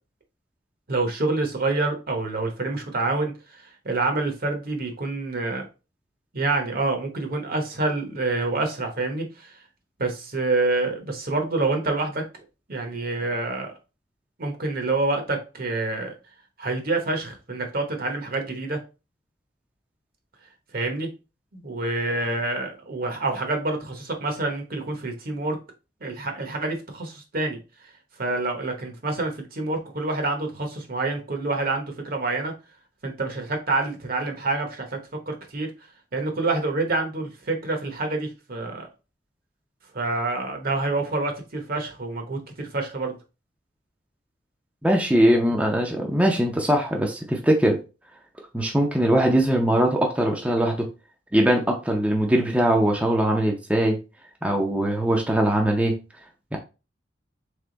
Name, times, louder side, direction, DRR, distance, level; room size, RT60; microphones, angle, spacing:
voice 1, 0.9-5.7 6.3-9.5 10.0-12.2 12.7-13.7 14.4-16.1 16.6-18.8 20.7-21.1 21.5-25.6 26.0-27.6 28.2-32.5 33.0-35.0 35.3-35.7 36.1-38.9 39.9-43.2, right 2 dB, 55° right, 4 dB, 1.0 m, -27 dB
voice 2, 44.8-47.8 48.5-50.9 51.3-54.0 54.4-56.0 56.5-56.6, right 1 dB, 5° right, 0 dB, 0.6 m, -21 dB
3.5 x 3.4 x 3.9 m, 0.31 s
head